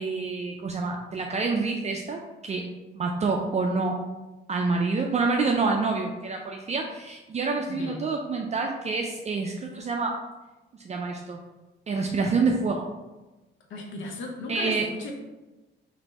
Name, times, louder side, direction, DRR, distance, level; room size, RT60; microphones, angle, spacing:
voice 1, 0.0-2.7 2.9-4.0 4.5-10.2 10.8-11.4 11.9-12.9 14.5-14.9, right 4 dB, 35° right, 1 dB, 0.4 m, -27 dB
voice 2, 7.7-8.0 13.7-15.1, left 2 dB, 75° left, 1 dB, 0.8 m, -36 dB
3.2 x 2.6 x 4.1 m, 1.1 s
cardioid pair, 90°, 20 cm